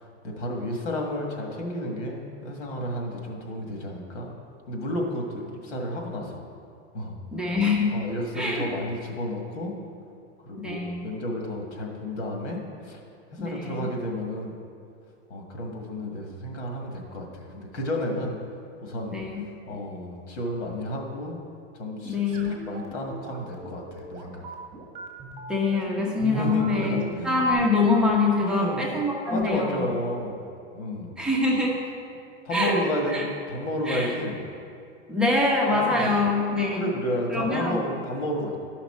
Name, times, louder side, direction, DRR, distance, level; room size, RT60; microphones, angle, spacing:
voice 1, 0.2-4.3 4.7-6.4 6.9-7.2 7.9-9.7 10.5-13.0 13.3-14.6 15.3-18.4 18.8-19.2 19.7-21.4 21.7-24.4 26.2-27.3 28.4-29.0 29.3-30.4 30.7-31.1 32.5-34.4 35.7-36.1 36.7-38.6, left 1 dB, 90° left, 1 dB, 1.8 m, -31 dB
voice 2, 7.3-8.0 8.3-8.7 10.6-11.0 13.4-13.9 19.1-19.4 22.0-22.5 25.5-29.9 31.2-31.8 32.5-32.8 33.1-33.3 33.8-34.2 35.1-36.9 37.3-37.8, left 3 dB, ahead, -4 dB, 1.0 m, -24 dB
sound 1, 22.3-27.5, right 4 dB, 20° right, 1.9 m, -41 dB
12.0 x 5.8 x 4.4 m, 2.4 s
supercardioid pair, 135°, 35 cm